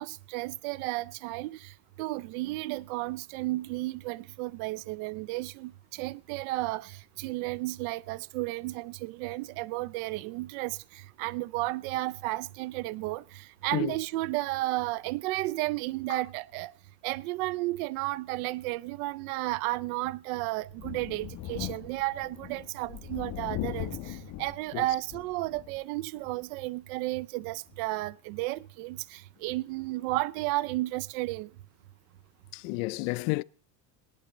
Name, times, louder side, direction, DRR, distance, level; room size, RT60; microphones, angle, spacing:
voice 1, 0.0-1.7 2.0-16.7 17.0-31.5, right 19 dB, 75° right, 0.5 m, -33 dB
Thunder, 20.7-25.8 26.3-26.4 27.7-27.8, left 13 dB, 45° left, 1.3 m, -39 dB
voice 2, 32.5-33.4, left 23 dB, 70° left, 0.6 m, -31 dB
18.5 x 11.0 x 4.2 m
cardioid pair, 145°, 43 cm